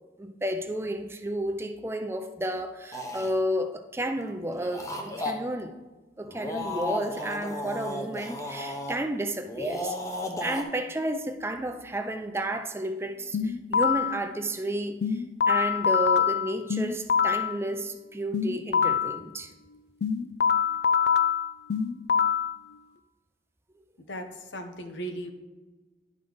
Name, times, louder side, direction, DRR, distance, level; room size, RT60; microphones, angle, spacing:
voice 1, 0.2-5.7 6.2-10.0 10.4-19.5, right 1 dB, 15° right, 7 dB, 0.4 m, -32 dB
sound 1, 2.9-3.3 4.5-5.3 6.2-9.0 9.5-10.6, left 1 dB, 15° left, 0.7 m, -34 dB
sound 2, 13.3-14.2 15.0-17.5 18.3-19.2 20.0-22.5, left 6 dB, 65° left, 0.4 m, -24 dB
voice 2, 24.1-25.3, right 1 dB, 85° left, 6 dB, 1.0 m, -37 dB
11.0 x 5.2 x 3.9 m, 1.2 s
head